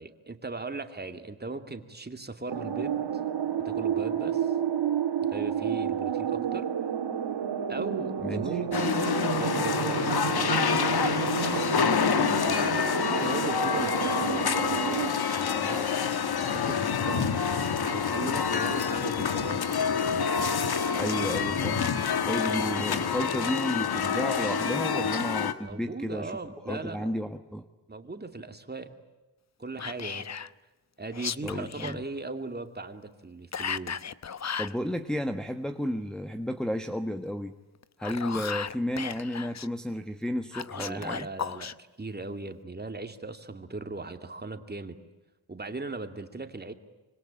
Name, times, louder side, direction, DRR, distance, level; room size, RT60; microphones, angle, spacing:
voice 1, 0.0-3.2 3.6-4.5 5.3-6.7 7.7-15.9 16.5-17.3 17.8-19.7 25.6-27.1 27.9-28.9 29.6-30.3 31.0-34.0 40.7-45.0 45.5-46.7, right 3 dB, 25° right, 7 dB, 2.6 m, -38 dB
sound 1, 2.5-15.1, right 8 dB, 70° right, 3.1 m, -30 dB
voice 2, 8.2-8.6 20.9-22.0 22.2-26.3 26.7-27.7 31.4-32.0 34.6-37.5 38.0-41.3, equal, ahead, 5 dB, 1.3 m, -32 dB
sound 2, 8.7-25.5, left 6 dB, 60° left, 1.8 m, -27 dB
Whispering, 29.8-30.5 31.1-32.0 33.5-34.8 37.8-39.7 40.5-41.7, left 7 dB, 40° left, 0.9 m, -35 dB
26.0 x 25.5 x 8.9 m, 1.1 s
wide cardioid pair, 100°, 43 cm